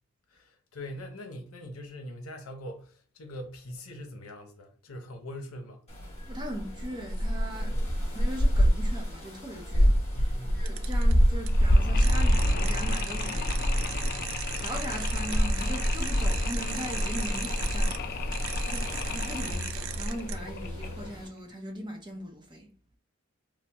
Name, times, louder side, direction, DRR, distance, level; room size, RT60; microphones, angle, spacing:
voice 1, 0.3-5.9 7.7-7.9 10.1-10.7 14.1-14.5, left 1 dB, 90° left, 0.7 m, -42 dB
sound 1, 5.9-21.3, equal, 30° left, 0.9 m, -27 dB
voice 2, 6.3-14.0 14.6-18.0 18.6-22.7, equal, 20° right, 0.6 m, -40 dB
sound 2, 10.6-11.1 11.5-11.6 12.0-18.0 18.3-20.3, right 10 dB, 65° right, 0.3 m, -39 dB
Mechanisms, 11.4-21.2, left 4 dB, 45° left, 0.4 m, -37 dB
3.3 x 2.0 x 2.9 m
head